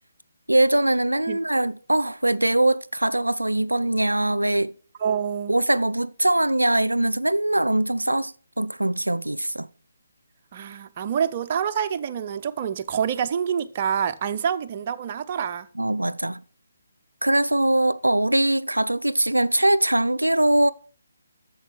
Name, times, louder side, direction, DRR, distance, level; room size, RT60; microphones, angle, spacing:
voice 1, 0.5-4.7 5.5-9.7 15.8-16.4 17.2-20.7, right 1 dB, 85° right, 0.3 m, -22 dB
voice 2, 5.0-5.6 10.5-15.7, right 8 dB, 35° right, 0.5 m, -27 dB
8.1 x 7.0 x 4.6 m
figure-of-eight pair, 145°, 0 cm